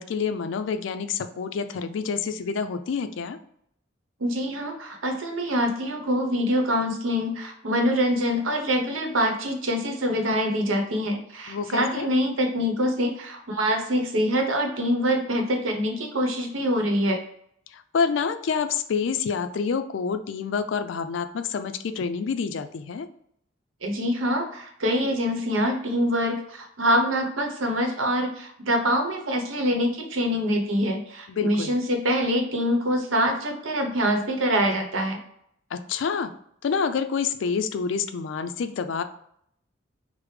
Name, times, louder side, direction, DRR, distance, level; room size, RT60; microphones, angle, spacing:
voice 1, 0.0-3.4 11.5-12.1 17.7-23.1 31.3-31.7 35.7-36.3 36.6-39.0, left 5 dB, 70° left, 10 dB, 0.3 m, -28 dB
voice 2, 4.2-17.2 23.8-35.2, equal, 85° right, 3 dB, 0.8 m, -25 dB
4.8 x 2.0 x 3.2 m, 0.70 s
head